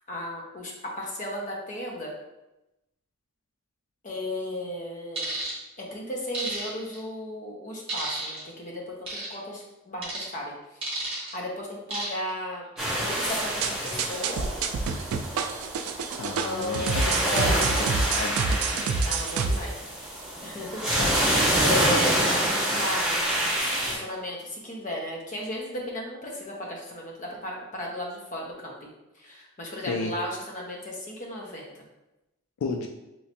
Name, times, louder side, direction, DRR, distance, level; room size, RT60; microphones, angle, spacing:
voice 1, 0.1-2.1 4.0-5.4 5.8-10.5 11.2-12.6 13.0-14.5 16.4-17.6 19.1-19.7 20.4-21.4 21.6-23.2 23.8-28.9 29.2-31.7, left 1 dB, 35° left, -2 dB, 0.6 m, -35 dB
sound 1, 5.1-5.5 6.3-7.0 7.9-8.4 9.1-9.3 10.0-10.3 10.8-11.3 11.9-12.3 12.7-13.0, right 2 dB, 25° right, 1.0 m, -32 dB
sound 2, 12.8-23.9, right 1 dB, ahead, 0.6 m, -27 dB
sound 3, 13.6-19.6, right 5 dB, 90° right, 0.3 m, -28 dB
voice 2, 16.2-18.4 21.0-21.2 29.8-30.1 32.6-32.9, left 4 dB, 80° left, 3 dB, 0.3 m, -33 dB
3.2 x 3.0 x 2.8 m, 0.97 s
head